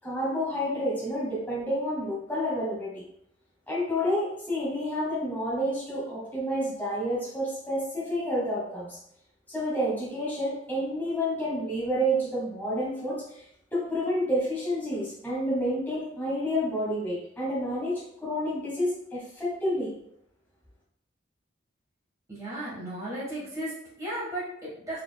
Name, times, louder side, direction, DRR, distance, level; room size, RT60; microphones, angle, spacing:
voice 1, 0.0-3.0 3.7-9.0 9.5-13.4 13.7-19.9, equal, 10° left, -8 dB, 1.5 m, -29 dB
voice 2, 22.3-25.0, right 1 dB, 20° right, -9 dB, 1.5 m, -35 dB
4.4 x 3.7 x 2.3 m, 0.73 s
head